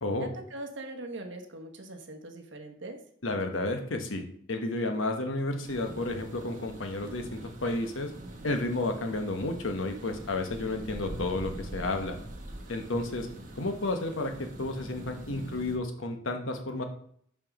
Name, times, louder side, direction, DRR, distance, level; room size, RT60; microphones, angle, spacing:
voice 1, 0.2-3.0, right 2 dB, 65° right, 3 dB, 1.2 m, -41 dB
voice 2, 3.2-8.1 8.4-12.2 12.7-13.3 13.6-14.3 14.6-16.8, left 2 dB, 90° left, 5 dB, 1.1 m, -31 dB
sound 1, 5.6-15.8, right 1 dB, 40° right, 1.4 m, -43 dB
6.0 x 4.7 x 6.0 m, 0.64 s
head